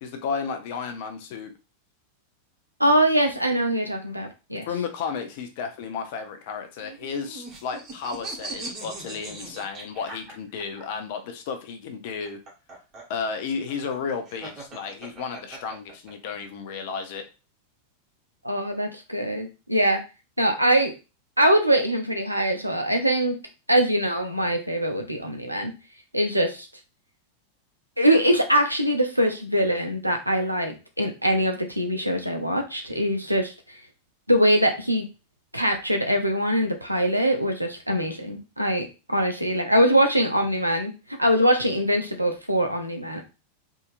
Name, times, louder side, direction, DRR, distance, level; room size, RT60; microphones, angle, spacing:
voice 1, 0.0-1.5 4.7-12.4 13.1-17.2, left 5 dB, 50° left, 7 dB, 0.7 m, -33 dB
voice 2, 2.8-4.7 18.4-20.0 20.4-20.9 21.4-23.4 23.7-25.7 26.1-26.7 28.0-33.8 34.3-35.1 35.5-40.9 41.2-43.2, equal, 85° right, 5 dB, 0.7 m, -23 dB
sound 1, 6.8-10.8 12.1-16.3, right 2 dB, 35° right, 1.5 m, -39 dB
3.7 x 2.7 x 2.5 m, 0.30 s
figure-of-eight pair, 90°, 0 cm